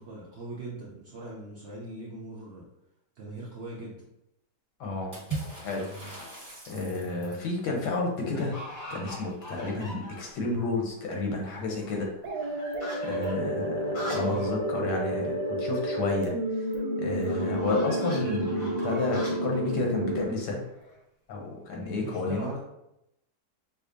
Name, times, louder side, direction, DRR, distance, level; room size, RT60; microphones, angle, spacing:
voice 1, 0.0-2.6 3.2-4.0 14.2-14.5 22.0-22.6, right 2 dB, 65° right, -5 dB, 0.7 m, -40 dB
voice 2, 4.8-5.3 5.6-6.1 6.7-8.6 8.9-12.1 13.0-16.3 17.0-20.6 21.3-22.5, left 3 dB, 80° left, 0 dB, 1.4 m, -31 dB
Water / Splash splatter, 5.1-7.5, right 3 dB, 15° right, 1.0 m, -39 dB
sound 1, 6.0-6.5 7.0-7.5 7.7-7.8 8.3-10.5 10.9-11.0 11.2-14.5 14.8-14.9 15.2-15.3 17.2-21.0, equal, 40° left, 0.7 m, -43 dB
sound 2, 12.2-20.2, right 1 dB, 85° right, 1.2 m, -30 dB
5.2 x 2.0 x 2.5 m, 0.83 s
omnidirectional pair, 1.8 m